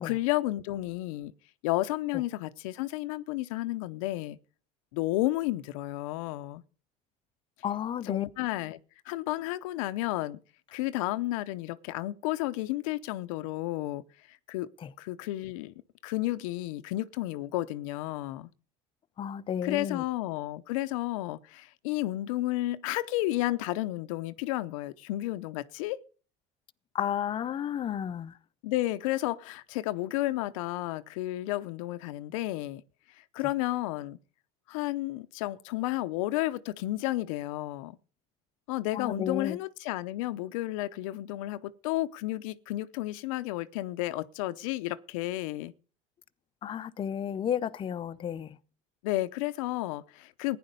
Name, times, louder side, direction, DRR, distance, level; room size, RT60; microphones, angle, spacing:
voice 1, 0.0-1.3 1.6-4.4 4.9-6.6 8.0-8.8 9.1-10.4 10.7-14.0 14.3-14.7 15.0-15.7 16.0-18.5 19.6-26.0 28.6-32.8 33.3-34.2 34.7-38.0 38.7-45.7 49.0-50.6, left 17 dB, 85° left, 0.7 m, -32 dB
voice 2, 7.6-8.3 14.8-14.9 19.2-20.0 26.9-28.3 38.9-39.6 46.6-48.6, left 9 dB, 30° left, 0.6 m, -32 dB
15.0 x 10.0 x 5.3 m
supercardioid pair, 115°, 17 cm